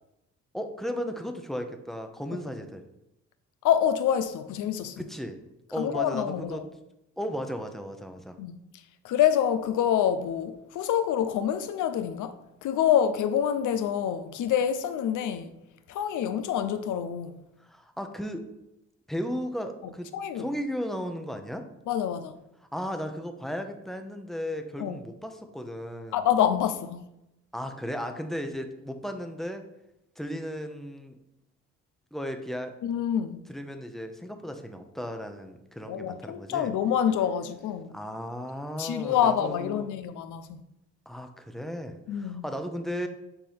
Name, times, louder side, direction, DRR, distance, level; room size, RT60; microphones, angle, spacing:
voice 1, 0.5-2.8 5.0-5.4 5.7-6.6 7.2-8.4 17.6-18.4 19.1-20.1 20.3-21.7 22.7-26.2 27.5-29.6 30.2-31.2 32.1-32.7 33.5-36.7 37.9-39.9 41.1-43.1, equal, ahead, 0.9 m, -35 dB
voice 2, 3.6-5.0 5.8-6.6 8.4-12.4 12.6-15.5 15.9-17.4 20.1-20.5 21.9-22.3 24.8-25.0 26.1-27.1 32.8-33.4 35.9-37.9 38.8-40.6 42.1-42.4, left 9 dB, 80° left, 0.7 m, -27 dB
8.8 x 4.3 x 3.5 m
cardioid pair, 90°, 30 cm